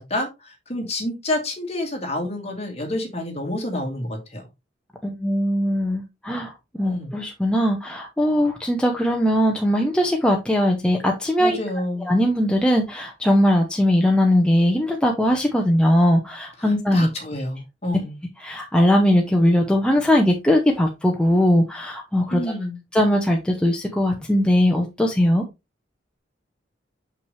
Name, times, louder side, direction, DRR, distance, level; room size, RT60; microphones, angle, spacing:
voice 1, 0.0-4.4 6.8-7.1 11.4-12.1 16.6-18.1 22.3-22.8, left 1 dB, 35° left, 2.2 m, -28 dB
voice 2, 5.0-11.6 12.0-17.1 18.4-22.4 22.9-25.4, equal, 5° left, 0.8 m, -20 dB
6.5 x 5.7 x 3.2 m
head